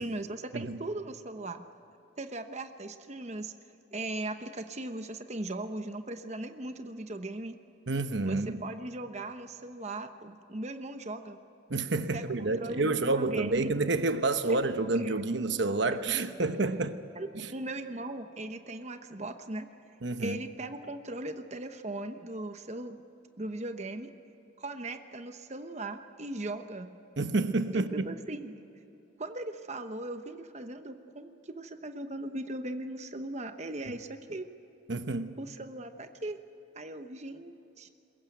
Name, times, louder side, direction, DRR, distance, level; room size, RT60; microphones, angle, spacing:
voice 1, 0.0-1.6 2.2-3.5 3.9-7.6 8.3-11.4 12.1-13.7 14.5-14.6 15.0-15.1 17.1-19.7 20.2-23.0 23.4-24.1 24.6-26.9 27.7-28.5 29.2-34.5 35.4-36.4 36.7-37.9, right 2 dB, 35° right, 8 dB, 1.0 m, -38 dB
voice 2, 7.9-8.6 11.7-17.0 17.3-17.5 20.0-20.4 27.2-28.1 34.9-35.3, right 3 dB, 65° right, 9 dB, 1.0 m, -29 dB
22.0 x 21.5 x 9.1 m, 2.9 s
head